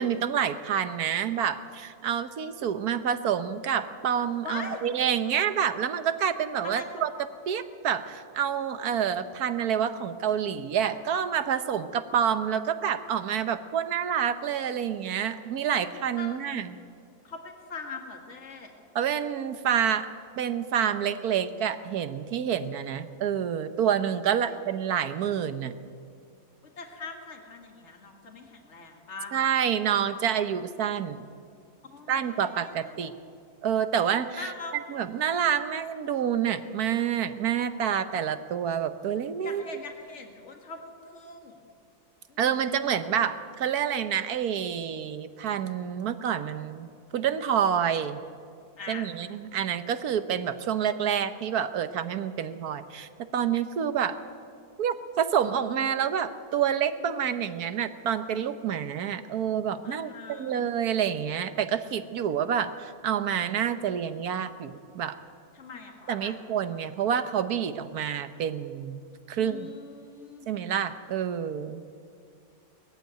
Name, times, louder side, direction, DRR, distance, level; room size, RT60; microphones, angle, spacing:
voice 1, 0.0-7.1 7.5-16.8 18.9-20.1 20.4-25.7 29.3-31.2 32.1-33.1 33.6-34.5 34.9-39.6 42.4-46.9 47.1-48.2 48.9-54.2 54.8-65.2 66.1-69.0 69.3-69.7 70.5-71.8, right 8 dB, 70° right, 11 dB, 1.4 m, -28 dB
voice 2, 4.4-4.8 6.6-6.9 16.2-16.4 17.2-18.7 24.5-24.6 26.8-29.4 31.8-33.2 34.4-34.8 39.4-41.6 42.3-42.9 48.8-49.1 59.8-60.6 65.5-66.5 69.3-70.5, left 4 dB, 45° left, 3 dB, 2.3 m, -42 dB
20.5 x 14.5 x 9.1 m, 2.3 s
omnidirectional pair, 1.7 m